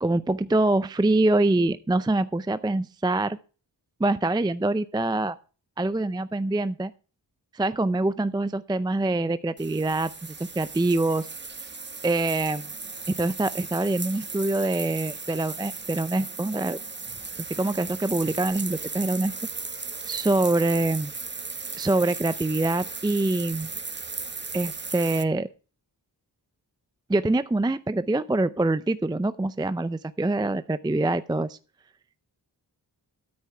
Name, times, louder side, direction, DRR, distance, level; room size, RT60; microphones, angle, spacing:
voice 1, 0.0-3.4 4.0-5.4 5.8-6.9 7.5-11.3 12.0-12.7 13.1-16.8 17.5-19.3 20.1-21.1 21.7-23.7 24.5-25.5 27.1-31.6, right 2 dB, 10° right, 14 dB, 0.4 m, -25 dB
sound 1, 9.6-25.2, right 4 dB, 25° right, 0.9 m, -36 dB
13.0 x 9.5 x 3.3 m, 0.36 s
cardioid pair, 60°, 42 cm